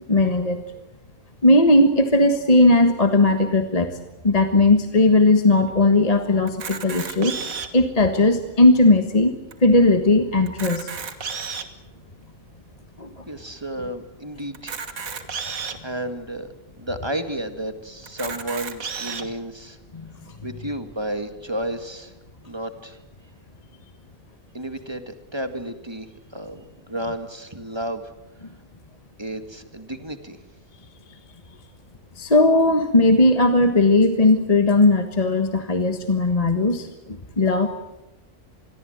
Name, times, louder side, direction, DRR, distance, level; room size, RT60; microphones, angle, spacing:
voice 1, 0.1-0.6 1.4-4.0 4.2-7.3 7.7-9.3 9.6-10.9 13.0-13.2 19.9-20.1 32.2-37.7, left 2 dB, 30° left, 7 dB, 1.5 m, -17 dB
Camera, 6.5-7.9 8.5-8.6 8.8-9.0 9.5-9.6 10.4-11.8 12.4-12.5 14.5-15.8 16.5-16.6 16.9-17.0 18.0-19.2, right 5 dB, 85° right, 2.0 m, -32 dB
voice 2, 13.3-14.7 15.6-16.5 16.8-19.8 20.4-22.1 22.4-23.0 24.5-26.1 26.3-28.0 29.2-30.4, right 1 dB, 20° right, 8 dB, 2.0 m, -32 dB
26.5 x 22.0 x 8.0 m, 0.94 s
omnidirectional pair, 1.4 m